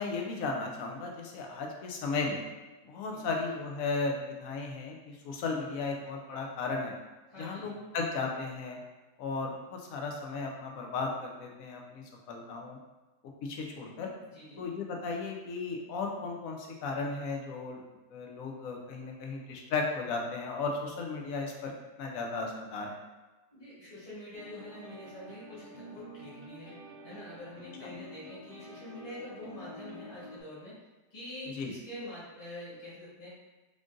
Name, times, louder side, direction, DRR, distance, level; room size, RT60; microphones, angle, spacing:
voice 1, 0.0-2.4 2.8-6.9 7.4-8.8 9.2-12.8 13.4-14.1 14.6-17.8 18.1-21.7 22.0-23.0 31.6-31.7, left 4 dB, 65° left, 1 dB, 0.9 m, -35 dB
voice 2, 7.3-7.7 14.2-14.7 23.5-26.8 27.0-30.8 31.1-33.3, left 1 dB, 25° left, -9 dB, 1.1 m, -46 dB
sound 1, 24.3-30.4, equal, 50° right, 0.3 m, -49 dB
3.7 x 2.5 x 3.7 m, 1.2 s
omnidirectional pair, 1.7 m